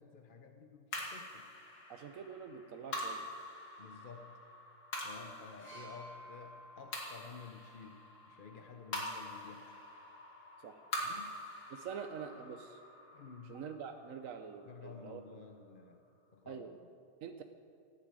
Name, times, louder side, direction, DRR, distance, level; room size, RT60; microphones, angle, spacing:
voice 1, 0.0-1.5 3.8-4.3 5.0-9.7 11.0-11.4 13.1-13.6 14.6-16.0 16.3-16.7, left 5 dB, 45° left, 5 dB, 0.7 m, -52 dB
sound 1, 0.9-15.4, left 1 dB, 90° left, 3.1 m, -45 dB
voice 2, 1.9-3.3 10.6-10.8 11.7-12.8 13.4-15.4 16.5-16.7 17.2-17.4, right 7 dB, 60° right, 6 dB, 1.0 m, -46 dB
sound 2, 5.6-9.4 10.4-10.6, right 1 dB, 70° left, 5.6 m, -55 dB
16.0 x 8.7 x 8.9 m, 2.5 s
omnidirectional pair, 1.8 m